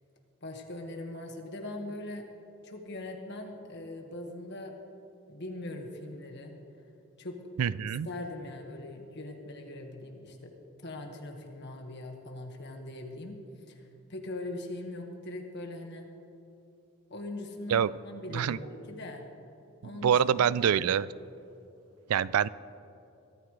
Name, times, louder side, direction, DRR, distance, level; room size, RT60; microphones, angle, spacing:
voice 1, 0.4-2.2 2.6-4.7 5.3-6.5 7.2-7.5 8.0-10.5 10.8-13.4 13.7-13.8 14.1-16.1 17.1-19.2 19.8-20.9, left 2 dB, 50° left, 3 dB, 1.7 m, -41 dB
voice 2, 7.6-8.1 17.7-17.9 18.3-18.6 20.0-21.1 22.1-22.5, right 8 dB, 85° right, 19 dB, 0.4 m, -25 dB
22.0 x 13.5 x 3.3 m, 2.8 s
head